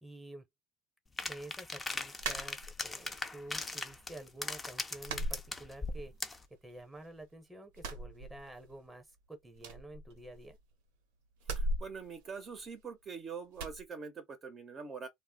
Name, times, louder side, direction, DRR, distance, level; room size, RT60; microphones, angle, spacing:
voice 1, 0.0-0.4 1.2-6.1 6.6-10.6, right 1 dB, 5° right, 0.9 m, -49 dB
sound 1, 1.2-6.4, left 3 dB, 15° left, 0.5 m, -39 dB
sound 2, 2.2-3.1 3.5-4.2 4.4-4.6 5.0-6.2 6.5-7.3 7.7-8.9 9.1-9.2 9.5-10.7 11.4-13.0 13.5-13.8, right 1 dB, 80° right, 0.9 m, -40 dB
voice 2, 11.5-15.1, right 5 dB, 35° right, 0.7 m, -44 dB
2.1 x 2.0 x 3.7 m
supercardioid pair, 100°, 0 cm